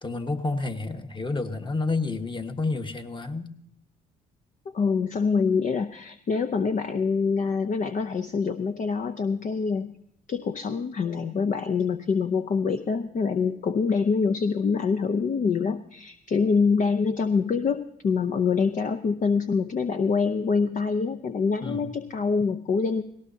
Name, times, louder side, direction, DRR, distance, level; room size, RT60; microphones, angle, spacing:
voice 1, 0.0-3.5 21.6-21.9, left 3 dB, 25° left, 6 dB, 1.5 m, -29 dB
voice 2, 4.7-10.0 10.3-23.0, left 5 dB, 40° left, 9 dB, 0.7 m, -25 dB
19.0 x 17.5 x 2.8 m, 0.72 s
hypercardioid pair, 55°, 20 cm